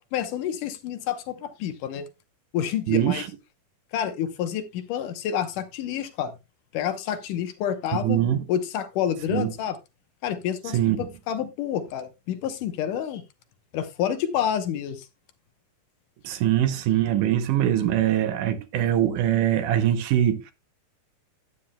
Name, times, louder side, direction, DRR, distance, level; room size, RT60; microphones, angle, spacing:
voice 1, 0.1-2.0 2.5-3.2 3.9-6.3 6.7-8.2 8.5-9.8 10.2-13.2 13.7-15.1, left 9 dB, 75° left, 2.5 m, -28 dB
voice 2, 2.9-3.3 8.0-8.4 9.3-9.5 10.7-11.0 16.2-20.5, right 11 dB, 75° right, 2.3 m, -22 dB
14.0 x 9.2 x 2.2 m
omnidirectional pair, 3.9 m